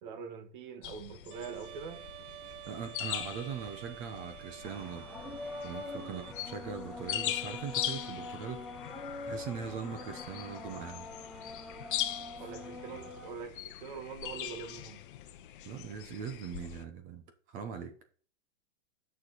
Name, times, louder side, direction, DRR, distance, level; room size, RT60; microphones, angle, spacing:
voice 1, 0.0-2.1 6.0-6.2 12.4-15.0, right 6 dB, 45° right, 1.6 m, -44 dB
sound 1, 0.8-16.8, left 12 dB, 45° left, 0.9 m, -41 dB
Bowed string instrument, 1.3-6.3, right 12 dB, 80° right, 0.7 m, -49 dB
voice 2, 2.7-5.1 5.6-8.6 9.2-11.1 12.9-13.0 15.6-17.9, right 7 dB, 25° right, 0.9 m, -41 dB
sound 2, 4.6-13.3, left 2 dB, ahead, 0.4 m, -44 dB
11.5 x 6.6 x 4.1 m
supercardioid pair, 165°, 35 cm